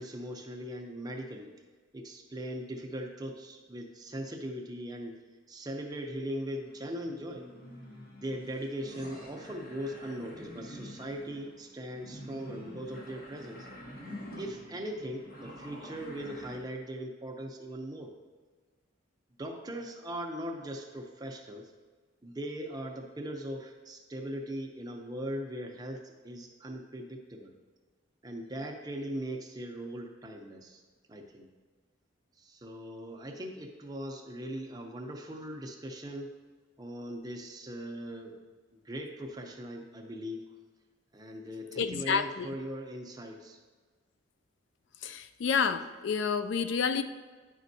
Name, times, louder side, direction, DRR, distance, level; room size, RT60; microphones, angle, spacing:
voice 1, 0.0-1.5 1.9-5.2 5.5-7.4 8.2-13.7 14.3-18.1 19.4-21.7 22.2-27.5 28.2-30.8 31.1-31.5 32.4-36.3 36.8-38.4 38.8-40.5 41.1-43.6, equal, 20° right, 2 dB, 0.6 m, -40 dB
sound 1, 6.4-16.6, equal, 45° left, 1.2 m, -47 dB
voice 2, 41.8-42.5 45.0-47.0, left 6 dB, 65° left, 11 dB, 0.3 m, -29 dB
9.9 x 5.3 x 2.7 m, 1.4 s
head